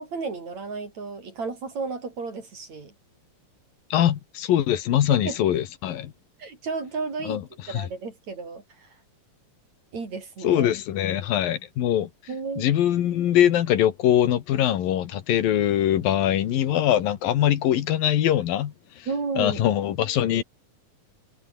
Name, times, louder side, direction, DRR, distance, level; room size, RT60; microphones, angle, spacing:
voice 1, 0.0-2.9 4.0-4.1 5.1-5.4 6.4-7.4 7.7-8.9 9.9-10.7 12.3-12.7 19.1-19.6, right 4 dB, 50° right, 6.2 m, -33 dB
voice 2, 3.9-6.1 7.2-7.4 7.7-7.9 10.4-12.1 12.6-19.1 19.4-20.4, left 11 dB, 80° left, 3.4 m, -22 dB
omnidirectional pair, 4.1 m